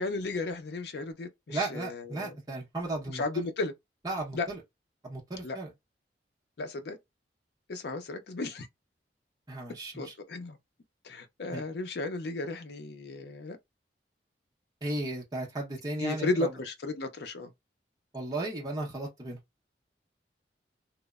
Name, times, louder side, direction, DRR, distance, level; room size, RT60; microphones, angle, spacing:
voice 1, 0.0-2.3 3.1-3.7 4.3-4.5 5.4-5.6 6.6-7.0 7.7-8.7 10.0-10.6 11.0-13.6 16.0-17.5, left 3 dB, 65° left, 0.5 m, -34 dB
voice 2, 1.5-3.5 4.0-4.6 5.0-5.7 9.5-10.2 11.5-11.6 14.8-16.6 18.1-19.4, right 2 dB, 20° right, 0.7 m, -35 dB
2.9 x 2.0 x 2.3 m
head